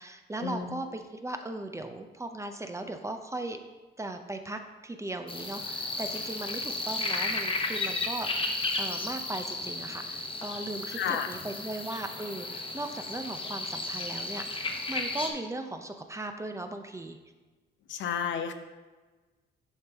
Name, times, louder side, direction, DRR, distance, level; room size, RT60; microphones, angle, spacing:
voice 1, 0.0-3.6 4.0-17.2, right 2 dB, 15° right, 6 dB, 0.5 m, -38 dB
sound 1, 5.3-15.3, left 2 dB, 25° left, 1.0 m, -34 dB
voice 2, 10.9-11.3 17.9-18.5, left 7 dB, 70° left, 7 dB, 0.6 m, -31 dB
7.2 x 5.1 x 3.5 m, 1.3 s
cardioid pair, 90°, 20 cm